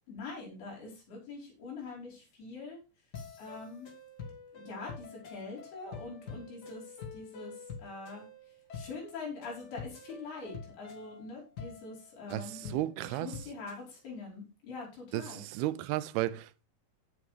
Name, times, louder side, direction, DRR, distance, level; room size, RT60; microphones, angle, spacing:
voice 1, 0.1-2.8 3.4-3.9 4.5-8.3 8.7-15.4, left 3 dB, 80° left, 7.1 m, -44 dB
sound 1, 3.1-13.8, left 5 dB, 45° left, 1.4 m, -47 dB
voice 2, 12.3-13.3 15.1-16.7, right 15 dB, 85° right, 2.6 m, -34 dB
16.0 x 7.1 x 3.4 m
omnidirectional pair, 4.4 m